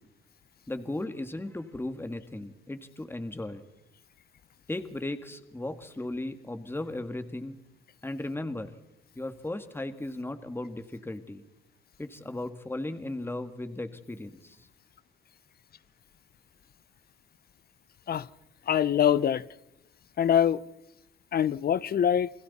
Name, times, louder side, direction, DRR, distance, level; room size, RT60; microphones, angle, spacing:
voice 1, 0.7-3.6 4.7-7.6 8.0-8.7 9.2-11.4 12.0-14.7, left 2 dB, 10° left, 1.8 m, -36 dB
voice 2, 18.7-19.4 20.2-20.6 21.3-22.3, left 9 dB, 50° left, 0.7 m, -24 dB
29.5 x 21.5 x 4.2 m
cardioid pair, 90°, 20 cm